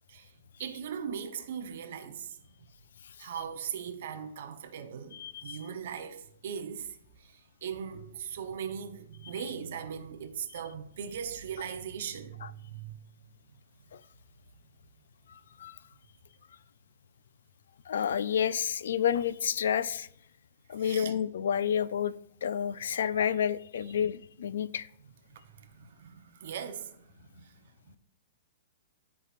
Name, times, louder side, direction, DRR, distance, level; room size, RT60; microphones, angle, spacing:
voice 1, 0.6-2.4 3.2-13.0 20.8-21.1 25.3-27.6 27.8-28.0, right 7 dB, 50° right, 0.8 m, -39 dB
voice 2, 5.1-5.6 12.4-12.5 13.9-14.0 15.6-15.8 17.9-20.1 20.7-22.1 22.4-24.9, left 8 dB, 70° left, 0.3 m, -30 dB
13.0 x 4.7 x 2.5 m
hypercardioid pair, 175°, 0 cm